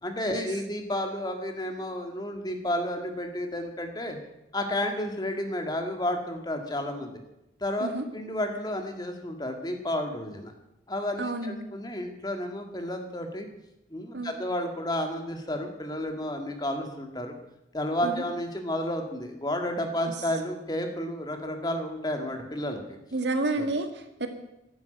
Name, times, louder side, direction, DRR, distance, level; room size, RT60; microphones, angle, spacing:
voice 1, 0.0-4.2 4.5-7.2 7.6-10.5 10.9-13.5 13.9-17.3 17.7-22.8 23.6-23.7, left 1 dB, 20° left, 4 dB, 2.0 m, -31 dB
voice 2, 11.2-11.7 14.1-14.3 18.0-18.2 23.1-24.3, right 2 dB, 80° right, 7 dB, 1.8 m, -30 dB
12.0 x 11.0 x 9.1 m, 0.88 s
head